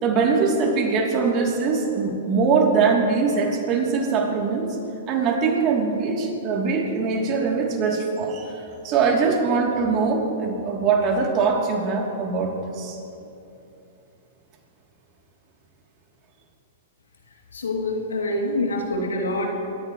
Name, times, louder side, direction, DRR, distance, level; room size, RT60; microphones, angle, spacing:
voice 1, 0.0-4.7 5.1-8.5 8.8-13.0, right 5 dB, 35° right, 0 dB, 3.0 m, -22 dB
voice 2, 17.5-19.5, left 1 dB, 85° left, 0 dB, 2.8 m, -25 dB
26.5 x 14.5 x 3.2 m, 2.8 s
hypercardioid pair, 115°, 0 cm